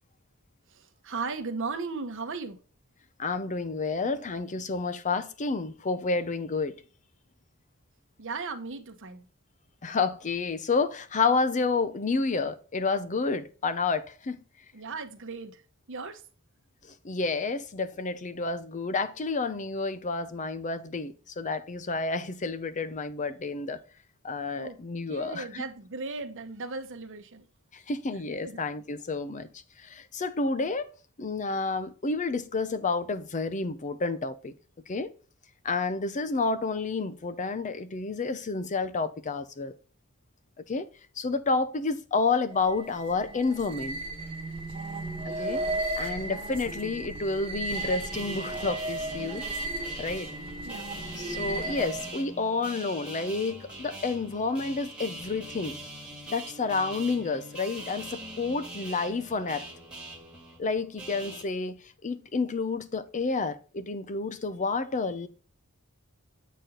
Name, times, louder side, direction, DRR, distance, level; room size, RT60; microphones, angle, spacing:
voice 1, 0.7-2.6 8.2-9.3 14.7-15.6 15.9-16.2 24.6-24.8 25.1-27.4 28.1-28.6 50.6-50.9, right 4 dB, 60° right, 1.0 m, -37 dB
voice 2, 3.2-6.8 9.8-14.4 17.0-23.8 24.2-25.6 27.7-29.5 29.8-30.9 31.2-34.5 34.9-35.1 35.6-39.7 40.7-40.9 41.2-44.0 45.3-45.6 45.9-49.4 50.0-50.3 51.2-55.8 56.3-59.6 60.6-61.8 62.0-65.3, left 4 dB, 35° left, 0.6 m, -30 dB
sound 1, 42.5-52.2, right 2 dB, 25° right, 1.3 m, -35 dB
sound 2, 47.7-61.4, right 1 dB, 5° right, 1.7 m, -42 dB
8.2 x 4.2 x 3.8 m
head